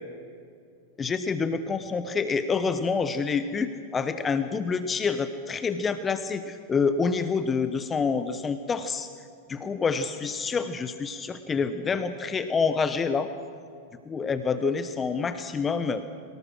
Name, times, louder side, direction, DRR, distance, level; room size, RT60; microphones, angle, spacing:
voice 1, 1.0-9.1 9.5-13.3 14.1-16.0, left 5 dB, 20° left, 11 dB, 1.0 m, -27 dB
23.5 x 19.0 x 6.3 m, 2.3 s
hypercardioid pair, 95°, 0 cm